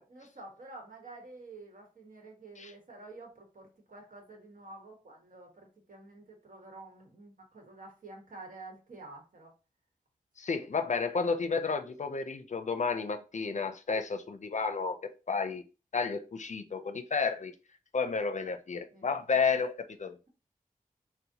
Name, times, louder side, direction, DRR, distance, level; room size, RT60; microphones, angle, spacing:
voice 1, 0.1-9.5 18.9-19.4, right 2 dB, 65° right, 1.2 m, -50 dB
voice 2, 10.4-15.6 15.9-17.5 17.9-20.2, left 5 dB, 55° left, 0.5 m, -31 dB
4.0 x 2.1 x 2.8 m
cardioid pair, 40°, 15 cm